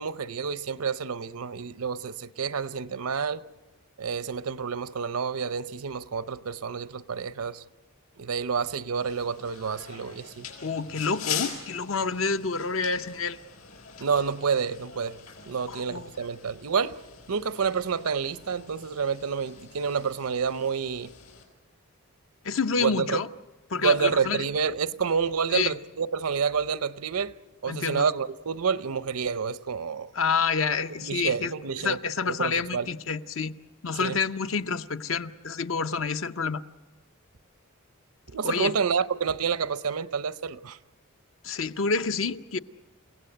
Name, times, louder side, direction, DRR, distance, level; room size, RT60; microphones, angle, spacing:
voice 1, 0.0-3.4 4.0-7.6 8.2-10.5 14.0-15.2 15.4-17.0 17.3-21.1 22.8-23.2 23.8-27.4 27.6-30.1 31.0-32.0 32.3-32.9 34.0-34.2 38.3-40.8, right 6 dB, 80° right, 0.7 m, -29 dB
sound 1, 8.9-21.4, left 9 dB, 75° left, 5.0 m, -42 dB
voice 2, 10.6-13.4 15.7-16.1 22.4-23.3 23.7-24.4 25.5-25.7 27.7-28.1 30.1-31.5 31.8-33.5 33.8-36.6 38.4-38.7 41.4-42.6, left 5 dB, 60° left, 0.7 m, -28 dB
29.5 x 17.0 x 7.9 m
head